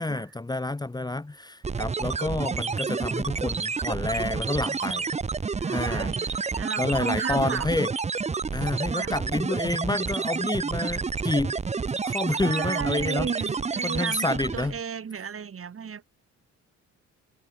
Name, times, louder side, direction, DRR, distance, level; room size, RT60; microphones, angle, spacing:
voice 1, 0.0-5.1 5.7-6.3 6.8-7.9 8.5-11.5 12.0-13.3 13.8-14.8, left 2 dB, 15° left, 1.6 m, -29 dB
sound 1, 1.6-14.8, right 5 dB, 20° right, 0.8 m, -29 dB
voice 2, 5.6-7.7 8.9-9.2 12.3-16.1, right 7 dB, 45° right, 7.0 m, -34 dB
cardioid pair, 90°, 30 cm